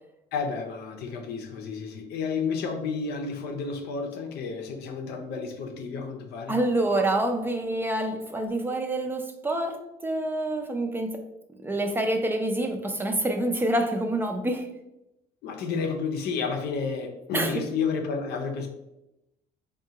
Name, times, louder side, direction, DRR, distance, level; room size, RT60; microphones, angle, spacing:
voice 1, 0.3-6.6 15.4-18.7, left 5 dB, 75° left, 3 dB, 0.6 m, -31 dB
voice 2, 6.5-11.2 11.6-14.7 17.3-17.6, right 1 dB, 10° right, 4 dB, 0.4 m, -27 dB
3.6 x 2.4 x 2.8 m, 0.90 s
cardioid pair, 110°, 17 cm